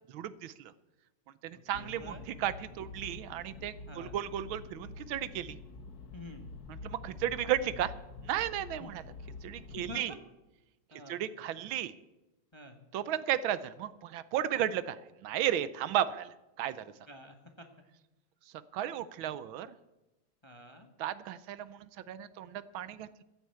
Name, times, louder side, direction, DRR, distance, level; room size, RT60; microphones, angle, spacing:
voice 1, 0.1-0.7 1.4-5.6 6.8-7.9 8.2-9.0 9.4-10.1 11.1-11.9 12.9-16.9 18.7-19.7 21.0-23.2, right 11 dB, 80° right, 16 dB, 1.5 m, -34 dB
voice 2, 1.5-2.3 3.8-4.2 6.1-6.5 8.8-8.9 9.8-10.2 10.9-11.2 12.5-12.8 17.1-17.7 20.4-20.9, left 1 dB, 15° left, 5 dB, 1.1 m, -48 dB
sound 1, 1.7-10.0, left 4 dB, 50° left, 1.5 m, -47 dB
14.5 x 8.1 x 8.2 m, 0.99 s
omnidirectional pair, 2.2 m